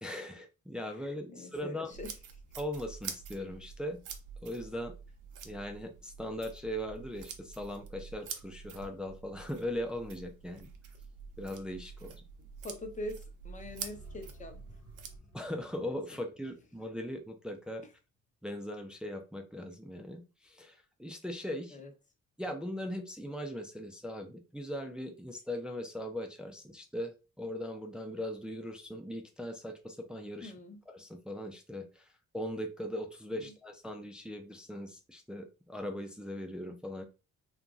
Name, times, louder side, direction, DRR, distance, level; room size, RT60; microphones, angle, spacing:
voice 1, 0.0-2.0 2.6-4.0 4.4-4.9 5.4-10.7 11.4-12.2 15.3-17.8 18.4-21.8 22.4-30.5 30.9-37.0, left 1 dB, 5° right, 5 dB, 0.4 m, -39 dB
voice 2, 1.3-2.1 12.6-14.5 15.8-15.9 21.7-21.9 30.4-30.8 33.3-33.5, left 1 dB, 25° left, 5 dB, 0.8 m, -43 dB
sound 1, 1.9-15.2, right 6 dB, 85° right, 0.6 m, -47 dB
sound 2, 13.5-18.2 18.5-18.6, left 4 dB, 70° left, 1.2 m, -59 dB
2.9 x 2.5 x 2.4 m, 0.31 s
cardioid pair, 90°, 30 cm